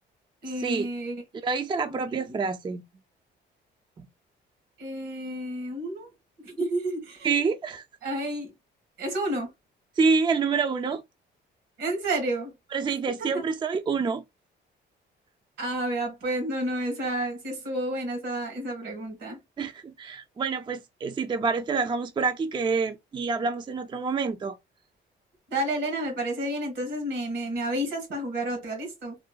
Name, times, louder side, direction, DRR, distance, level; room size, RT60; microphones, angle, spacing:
voice 1, 0.4-1.2 1.9-2.4 4.8-6.1 6.4-7.3 8.0-8.5 9.0-9.5 11.8-12.5 13.2-13.5 15.6-19.4 25.5-29.2, right 1 dB, 85° right, 1.9 m, -30 dB
voice 2, 1.4-2.8 4.0-4.1 7.2-7.8 10.0-11.0 12.7-14.2 19.6-24.6, right 5 dB, 25° right, 0.4 m, -27 dB
3.6 x 2.6 x 2.2 m
cardioid pair, 90°, 20 cm